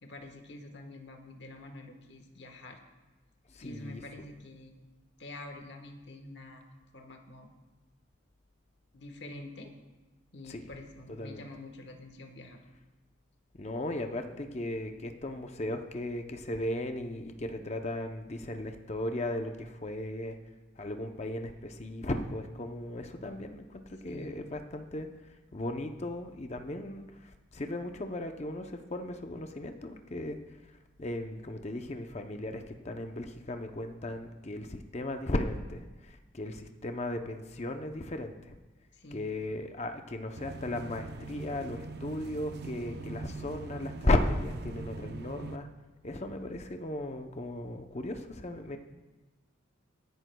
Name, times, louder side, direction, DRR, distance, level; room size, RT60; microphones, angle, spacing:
voice 1, 0.0-2.8 3.6-4.8 5.2-6.6 6.9-7.5 8.9-9.7 10.3-12.6 24.1-24.4 38.9-39.3, left 1 dB, 55° left, 4 dB, 1.3 m, -47 dB
voice 2, 3.5-4.3 10.5-10.6 11.1-11.4 13.6-20.4 20.8-25.1 25.5-30.4 31.0-38.5 39.1-45.7 46.0-48.8, left 1 dB, 35° left, 6 dB, 0.6 m, -36 dB
sound 1, 40.4-45.6, right 3 dB, 50° right, 0.6 m, -42 dB
22.0 x 11.0 x 2.3 m, 1.2 s
head